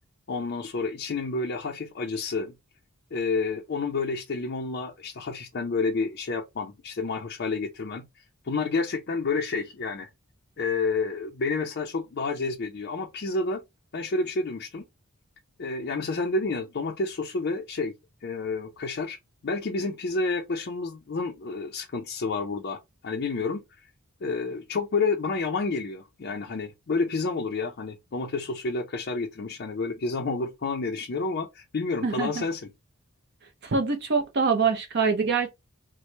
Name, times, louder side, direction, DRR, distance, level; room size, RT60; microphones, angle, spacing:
voice 1, 0.3-2.5 3.1-10.1 10.6-13.6 13.9-14.8 15.6-17.9 18.2-19.2 19.4-23.6 24.2-32.6, left 3 dB, 50° left, 0.5 m, -29 dB
voice 2, 33.6-35.5, right 5 dB, 50° right, 0.5 m, -24 dB
4.3 x 2.0 x 3.1 m
head